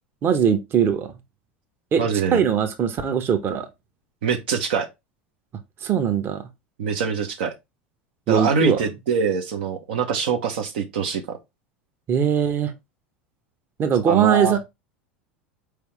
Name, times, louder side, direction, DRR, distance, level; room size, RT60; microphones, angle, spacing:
voice 1, 0.2-1.1 1.9-3.7 5.8-6.4 8.3-8.8 12.1-12.7 13.8-14.6, right 8 dB, 40° right, 1.0 m, -21 dB
voice 2, 2.0-2.5 4.2-4.9 6.8-7.5 8.3-11.4 14.1-14.5, right 5 dB, 70° right, 0.9 m, -24 dB
4.6 x 3.4 x 3.2 m
hypercardioid pair, 80°, 6 cm